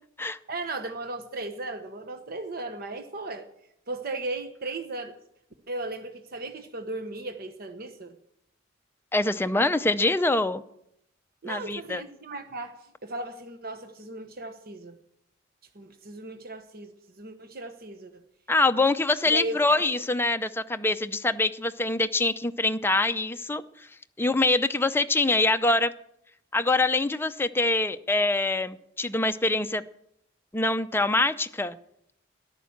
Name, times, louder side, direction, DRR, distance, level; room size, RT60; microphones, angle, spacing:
voice 1, 0.5-3.5 3.9-5.2 5.7-8.2 9.6-9.7 11.4-15.0 15.7-18.3 19.2-19.8, right 2 dB, 55° right, 7 dB, 1.1 m, -36 dB
voice 2, 9.1-10.6 11.4-12.0 18.5-23.6 24.2-25.9 26.5-29.8 30.5-31.8, left 2 dB, 10° left, 10 dB, 0.5 m, -24 dB
14.0 x 11.5 x 7.2 m, 0.77 s
head